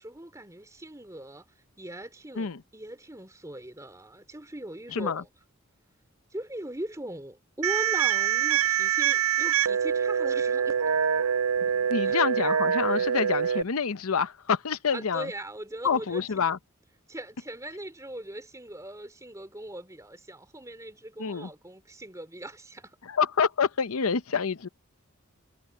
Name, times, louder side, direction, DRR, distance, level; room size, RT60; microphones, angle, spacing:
voice 1, 0.0-1.5 1.8-5.3 6.3-11.0 12.0-12.2 14.9-16.2 17.1-23.0, right 1 dB, 15° right, 3.3 m, -40 dB
voice 2, 4.9-5.2 11.9-15.3 15.8-16.6 21.2-21.5 23.0-24.7, left 6 dB, 85° left, 0.8 m, -27 dB
sound 1, 7.6-13.6, right 8 dB, 80° right, 0.5 m, -25 dB
head